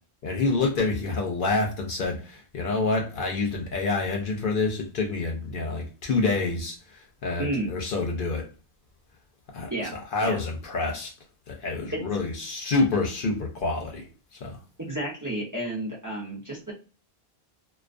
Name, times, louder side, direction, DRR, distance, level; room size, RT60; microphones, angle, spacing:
voice 1, 0.2-6.8 7.2-8.4 9.5-11.1 11.5-14.0 14.4-14.6, left 3 dB, 60° left, 0.7 m, -27 dB
voice 2, 7.4-7.7 9.7-9.9 10.2-10.4 11.9-12.0 14.8-16.7, right 1 dB, 25° right, 0.6 m, -31 dB
2.3 x 2.2 x 2.4 m
omnidirectional pair, 1.1 m